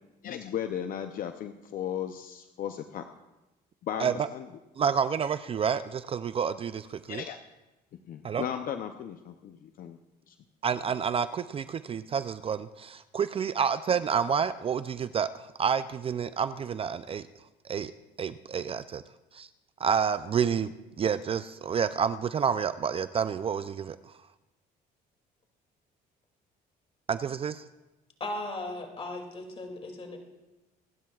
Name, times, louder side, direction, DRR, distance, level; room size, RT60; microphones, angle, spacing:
voice 1, 0.2-3.1 3.8-4.5 7.1-7.4 7.9-10.0 10.3-10.4, left 9 dB, 55° left, 0.6 m, -36 dB
voice 2, 4.8-7.2 8.2-8.4 10.6-17.2 17.6-17.9 18.2-19.0 19.3-19.5 19.8-20.7 21.0-24.0 27.1-27.6, right 7 dB, 35° right, 0.4 m, -29 dB
voice 3, 28.2-30.2, left 2 dB, 35° left, 2.5 m, -37 dB
26.0 x 12.0 x 2.4 m
cardioid pair, 110°, 17 cm